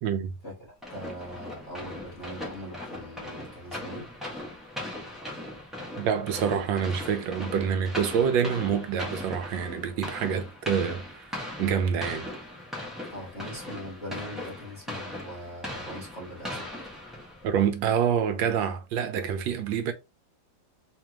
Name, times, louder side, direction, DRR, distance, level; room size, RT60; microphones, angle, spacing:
voice 1, 0.0-0.3 6.0-11.2 11.6-12.3 17.4-19.9, right 7 dB, 80° right, 1.4 m, -27 dB
sound 1, 0.8-17.6, left 1 dB, ahead, 1.3 m, -39 dB
voice 2, 0.9-4.1 13.1-16.7, equal, 35° left, 2.0 m, -41 dB
3.7 x 3.4 x 3.0 m
omnidirectional pair, 2.0 m